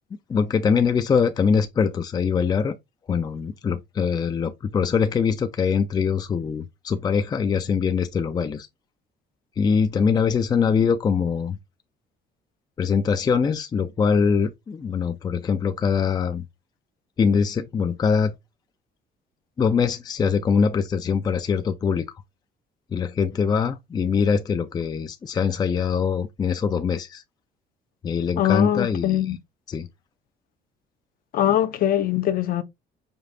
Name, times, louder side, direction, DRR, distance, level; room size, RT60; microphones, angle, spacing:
voice 1, 0.3-2.8 3.1-8.7 9.6-11.6 12.8-16.4 17.2-18.3 19.6-22.1 22.9-27.2 28.0-29.4 29.7-29.9, left 6 dB, 25° left, 0.4 m, -23 dB
voice 2, 28.4-29.4 31.3-32.6, left 11 dB, 55° left, 0.8 m, -22 dB
5.2 x 2.4 x 3.8 m
cardioid pair, 150°, 18 cm